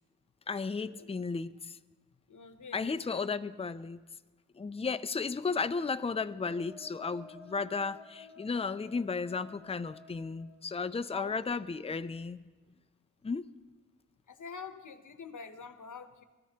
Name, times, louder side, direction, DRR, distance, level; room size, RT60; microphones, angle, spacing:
voice 1, 0.5-1.8 2.7-4.0 4.5-12.5 13.2-13.5, left 4 dB, 20° left, 13 dB, 0.4 m, -34 dB
voice 2, 2.3-3.2 11.1-11.7 14.3-16.2, left 6 dB, 70° left, 9 dB, 0.9 m, -46 dB
sound 1, 5.7-11.5, left 3 dB, 40° left, 1.0 m, -54 dB
22.0 x 13.5 x 2.8 m, 1.3 s
wide cardioid pair, 95°, 32 cm